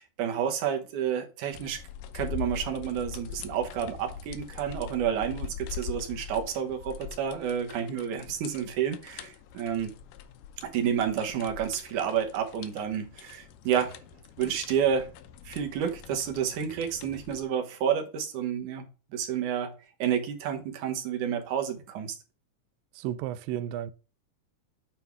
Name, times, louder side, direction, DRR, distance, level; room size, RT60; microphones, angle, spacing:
voice 1, 0.0-1.8 2.1-9.9 10.6-14.0 14.4-15.1 15.5-19.7 20.0-22.2, right 8 dB, 70° right, 2.4 m, -30 dB
sound 1, 1.5-17.5, left 8 dB, 75° left, 2.2 m, -43 dB
voice 2, 23.0-23.9, right 11 dB, 85° right, 2.2 m, -33 dB
9.1 x 3.6 x 4.6 m
omnidirectional pair, 4.0 m